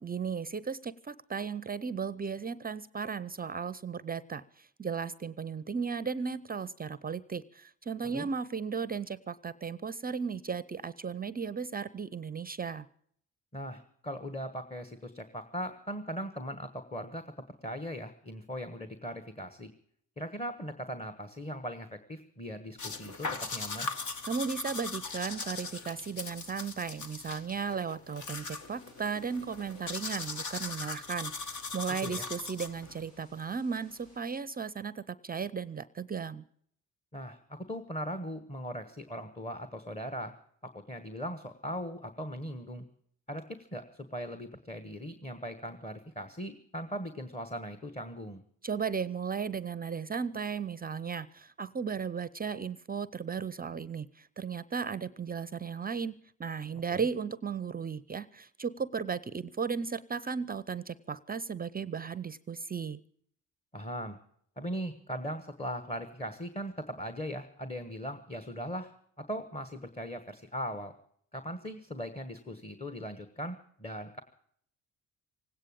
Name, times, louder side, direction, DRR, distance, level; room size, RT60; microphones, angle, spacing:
voice 1, 0.0-12.9 24.3-36.4 48.6-56.1 56.4-63.0, right 6 dB, 25° right, 17 dB, 0.5 m, -35 dB
voice 2, 13.5-17.3 17.6-19.7 20.2-23.9 32.0-32.2 37.1-40.3 40.7-42.8 43.3-43.8 44.1-48.4 56.9-57.1 63.7-64.2 64.6-68.9 69.3-70.9 71.3-74.2, equal, 20° left, 10 dB, 1.3 m, -39 dB
sound 1, 22.8-33.0, left 4 dB, 55° left, 1.6 m, -40 dB
sound 2, 28.1-34.2, equal, 90° left, 7.9 m, -61 dB
18.5 x 9.0 x 8.6 m, 0.65 s
cardioid pair, 75°, 36 cm